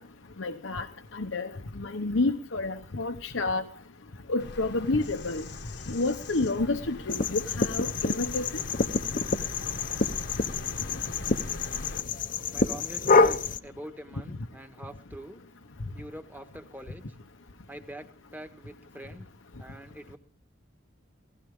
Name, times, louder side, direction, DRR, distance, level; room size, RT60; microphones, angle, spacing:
voice 1, 0.4-0.9 1.1-1.5 1.8-3.6 4.3-5.4 5.9-8.6, left 2 dB, 85° left, 6 dB, 1.0 m, -29 dB
Bird vocalization bird call bird song, 4.4-12.0, left 2 dB, 60° left, 1.1 m, -41 dB
sound 1, 7.1-13.6, left 4 dB, 45° left, 0.8 m, -27 dB
voice 2, 12.5-15.4 15.9-17.0 17.7-19.3 19.6-20.2, right 1 dB, 10° right, 5 dB, 1.5 m, -44 dB
17.5 x 15.5 x 3.6 m, 0.39 s
head